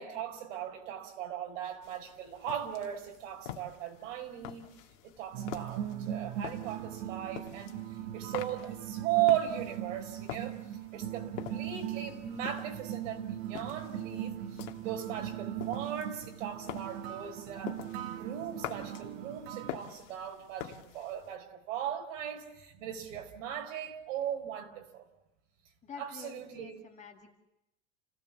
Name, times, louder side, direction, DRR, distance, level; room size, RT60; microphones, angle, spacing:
voice 1, 0.0-4.7 5.0-10.6 10.9-17.8 18.1-25.1 26.0-26.7, right 11 dB, 75° right, 4 dB, 5.1 m, -37 dB
sound 1, 1.8-21.4, left 12 dB, 65° left, 2.1 m, -47 dB
sound 2, 5.3-19.7, right 11 dB, 50° right, 1.5 m, -39 dB
voice 2, 25.8-27.4, left 6 dB, 20° left, 4 dB, 2.0 m, -48 dB
29.5 x 17.0 x 7.3 m, 0.87 s
supercardioid pair, 165°, 38 cm